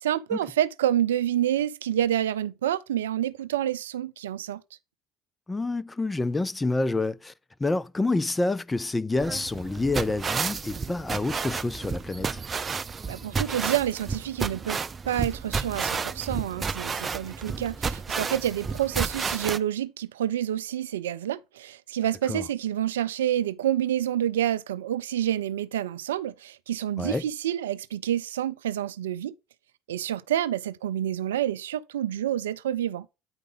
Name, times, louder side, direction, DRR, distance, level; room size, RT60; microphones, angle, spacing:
voice 1, 0.0-4.6 13.1-29.3 29.9-33.1, right 11 dB, 90° right, 0.4 m, -28 dB
voice 2, 5.5-7.3 7.6-12.4 22.3-22.4 27.0-27.2, left 2 dB, 15° left, 0.6 m, -28 dB
sound 1, 9.2-19.6, right 5 dB, 30° right, 0.7 m, -31 dB
9.5 x 4.9 x 3.9 m
hypercardioid pair, 70°, 0 cm